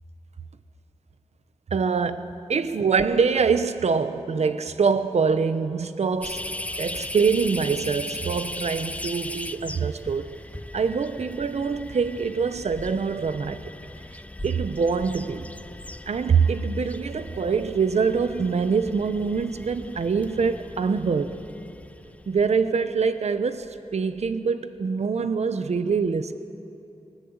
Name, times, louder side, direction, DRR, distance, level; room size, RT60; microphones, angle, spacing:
voice 1, 1.7-6.5 6.8-10.3 10.7-13.7 14.4-15.5 16.1-21.4 22.3-26.3, right 5 dB, 85° right, 0.8 m, -24 dB
sound 1, 6.2-23.1 23.6-23.7 24.2-24.3, left 1 dB, 10° left, 0.5 m, -38 dB
19.5 x 19.5 x 8.0 m
wide cardioid pair, 105°, 11 cm